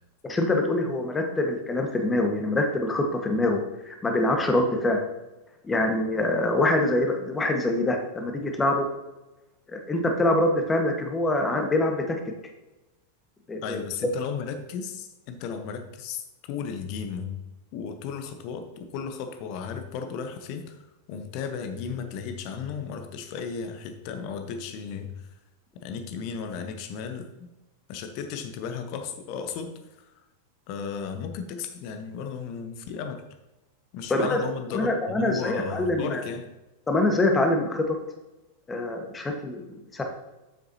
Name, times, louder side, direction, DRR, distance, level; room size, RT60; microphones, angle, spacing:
voice 1, 0.2-5.0 5.7-8.9 9.7-12.2 13.5-13.8 34.1-34.4 34.7-36.2 36.9-38.0 38.7-40.0, left 2 dB, 15° left, 4 dB, 1.4 m, -25 dB
voice 2, 13.6-17.4 17.7-20.8 21.1-25.1 25.7-27.5 27.9-30.1 30.7-33.3 33.9-36.5, left 6 dB, 45° left, 7 dB, 1.0 m, -35 dB
9.0 x 7.8 x 2.8 m, 1.0 s
figure-of-eight pair, 90°, 0 cm